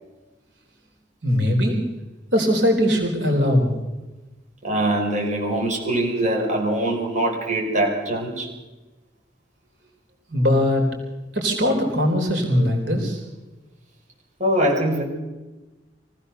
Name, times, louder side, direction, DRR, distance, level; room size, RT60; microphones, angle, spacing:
voice 1, 1.2-1.8 2.3-3.7 10.3-10.8 11.3-13.2, equal, 90° right, 2 dB, 4.2 m, -20 dB
voice 2, 4.6-8.5 14.4-15.0, right 1 dB, 40° right, -1 dB, 5.6 m, -23 dB
24.0 x 16.0 x 6.8 m, 1.1 s
head